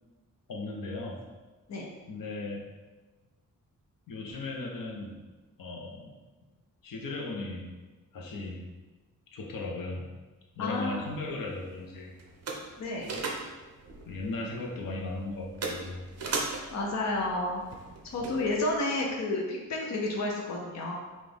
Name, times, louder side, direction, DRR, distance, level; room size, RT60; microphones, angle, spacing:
voice 1, 0.5-1.2 2.1-2.6 4.1-5.1 5.6-6.1 6.8-7.7 8.1-8.7 9.3-10.0 10.5-12.1 14.1-16.0 18.2-18.3, left 2 dB, 85° left, -1 dB, 0.9 m, -36 dB
voice 2, 10.6-11.0 12.8-13.1 16.7-17.6 18.1-20.9, left 2 dB, 55° left, -1 dB, 0.7 m, -30 dB
sound 1, 10.8-18.8, right 3 dB, 50° right, 0.7 m, -40 dB
5.9 x 2.5 x 3.5 m, 1.2 s
wide cardioid pair, 170°, 33 cm